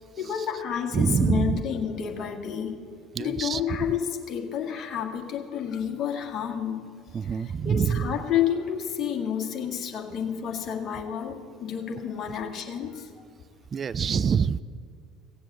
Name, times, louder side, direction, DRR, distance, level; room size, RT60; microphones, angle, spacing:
voice 1, 0.2-2.9 3.2-6.8 7.2-7.4 7.6-13.3, left 8 dB, 45° left, 2 dB, 1.8 m, -30 dB
voice 2, 0.9-1.6 3.1-3.6 7.1-8.1 13.7-14.6, right 6 dB, 35° right, 16 dB, 0.3 m, -25 dB
16.5 x 7.8 x 7.9 m, 2.1 s
figure-of-eight pair, 60°, 0 cm